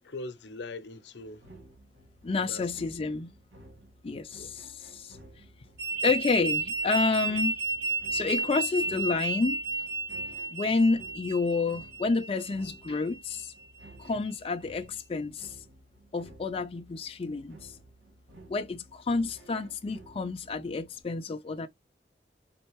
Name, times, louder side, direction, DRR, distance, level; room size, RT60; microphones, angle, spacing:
voice 1, 0.0-1.4 2.4-3.2 4.1-4.5, left 2 dB, 70° left, 0.7 m, -42 dB
sound 1, 1.2-21.0, right 1 dB, 85° right, 1.6 m, -54 dB
voice 2, 2.2-3.3 4.0-5.2 6.0-7.6 7.9-9.6 10.5-13.5 14.0-15.6 16.1-17.8 18.5-21.7, left 3 dB, 35° left, 0.4 m, -29 dB
sound 2, 5.8-13.4, right 3 dB, 65° right, 0.7 m, -32 dB
4.3 x 3.8 x 3.0 m
head